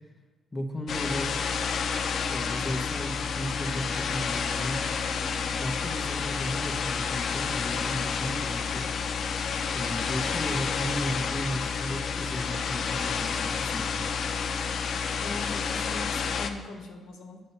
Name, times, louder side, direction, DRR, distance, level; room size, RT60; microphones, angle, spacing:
voice 1, 0.5-1.4 2.3-4.8 5.6-8.9 9.7-14.1, equal, 25° left, 2 dB, 1.1 m, -35 dB
sound 1, 0.9-16.5, left 6 dB, 60° left, 0.6 m, -30 dB
voice 2, 15.2-17.4, left 3 dB, 75° left, 2 dB, 1.2 m, -40 dB
9.2 x 5.4 x 5.5 m, 1.3 s
cardioid pair, 90°, 0 cm